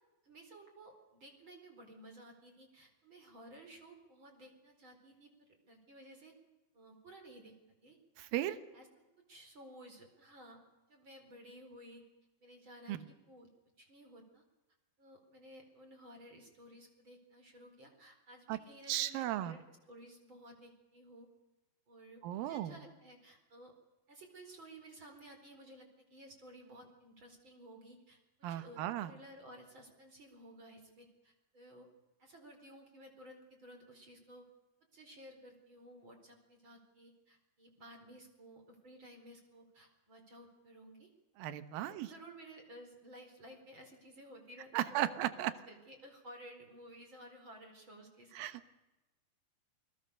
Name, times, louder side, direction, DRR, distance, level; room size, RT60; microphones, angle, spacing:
voice 1, 0.2-6.3 6.7-7.5 7.8-8.9 9.3-10.6 10.9-12.0 12.4-13.5 13.8-14.4 15.0-21.3 21.9-23.7 24.1-28.2 28.5-31.9 32.2-34.4 34.9-41.1 41.8-45.1 45.4-48.5, right 1 dB, 30° right, 4 dB, 4.8 m, -55 dB
voice 2, 8.2-8.6 12.9-13.0 18.5-18.6 18.9-19.6 22.2-22.7 28.4-29.1 41.4-42.1 44.7-45.5 48.4-48.8, right 13 dB, 75° right, 12 dB, 2.9 m, -36 dB
28.5 x 22.0 x 6.9 m, 1.1 s
omnidirectional pair, 4.4 m